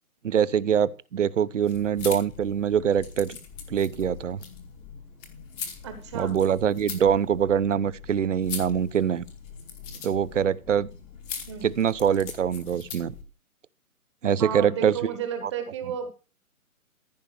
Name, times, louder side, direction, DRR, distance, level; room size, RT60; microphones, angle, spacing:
voice 1, 0.2-3.4 3.7-4.4 6.1-9.2 10.0-10.9 11.6-13.1 14.2-15.1 15.4-15.5, right 8 dB, 55° right, 0.8 m, -24 dB
sound 1, 1.6-13.2, left 6 dB, 10° left, 1.1 m, -41 dB
voice 2, 5.8-6.4 11.5-11.7 14.4-16.1, right 8 dB, 20° right, 1.1 m, -33 dB
14.5 x 5.5 x 6.6 m
hypercardioid pair, 155°, 44 cm